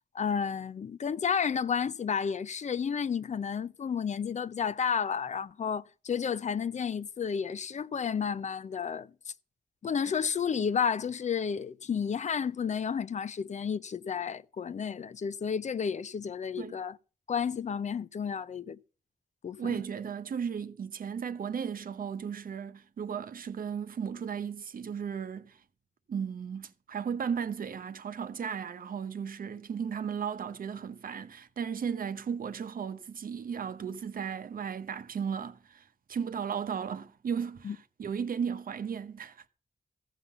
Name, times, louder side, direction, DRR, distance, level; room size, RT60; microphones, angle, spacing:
voice 1, 0.1-9.3 9.8-17.0 17.3-18.8 19.4-19.8 37.6-37.8, left 7 dB, 55° left, 0.5 m, -31 dB
voice 2, 19.6-25.6 26.1-39.4, right 7 dB, 80° right, 0.9 m, -35 dB
14.5 x 5.7 x 6.7 m
wide cardioid pair, 95°, 14 cm